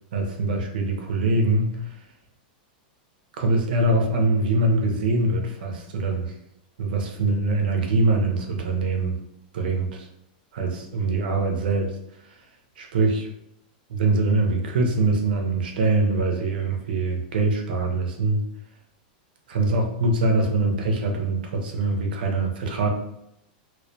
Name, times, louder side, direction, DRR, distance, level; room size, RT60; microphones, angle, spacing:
voice 1, 0.1-1.8 3.4-6.3 6.8-9.2 9.5-10.1 10.5-12.0 12.8-13.3 13.9-18.4 19.5-22.9, right 2 dB, 75° right, 2 dB, 0.6 m, -23 dB
2.2 x 2.1 x 2.6 m, 0.80 s
supercardioid pair, 175°, 5 cm